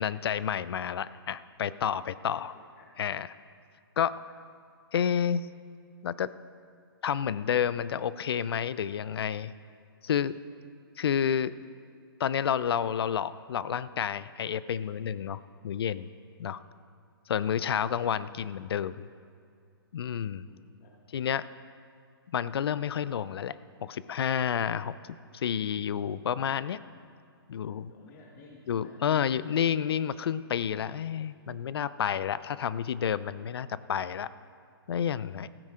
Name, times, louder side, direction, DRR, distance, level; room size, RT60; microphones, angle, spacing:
voice 1, 0.0-2.5 3.0-3.3 4.0-4.1 4.9-5.5 6.0-6.3 7.0-9.5 10.0-10.3 11.0-11.5 12.2-16.1 16.4-16.6 17.3-19.1 19.9-20.5 21.1-21.4 22.3-23.6 23.8-24.9 25.3-26.8 27.5-27.9 28.7-34.3 34.9-35.5, left 8 dB, 75° left, 17 dB, 0.4 m, -30 dB
voice 2, 17.6-18.0 20.4-21.0 27.9-29.5, left 3 dB, 40° left, -2 dB, 1.4 m, -53 dB
15.0 x 8.7 x 4.9 m, 2.3 s
hypercardioid pair, 150°, 13 cm